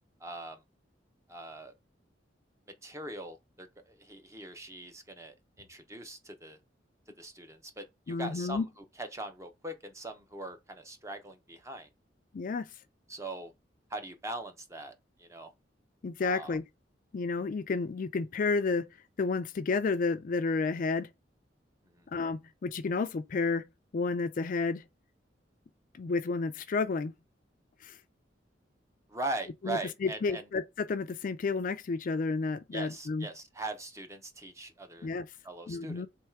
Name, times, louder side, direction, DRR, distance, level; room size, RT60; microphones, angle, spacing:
voice 1, 0.2-0.6 1.3-1.7 2.8-6.6 7.2-8.7 9.0-11.9 13.1-13.5 13.9-14.9 15.2-15.5 16.2-16.6 21.9-22.1 29.1-30.4 32.7-35.1 35.4-36.0, right 2 dB, 15° right, 0.6 m, -41 dB
voice 2, 8.1-8.6 12.3-12.7 16.0-16.6 17.1-18.9 19.2-21.1 22.1-23.6 23.9-24.8 26.0-27.1 27.8-27.9 29.6-33.3 35.0-35.3 35.7-36.1, left 4 dB, 50° left, 0.4 m, -31 dB
3.5 x 3.1 x 4.5 m
head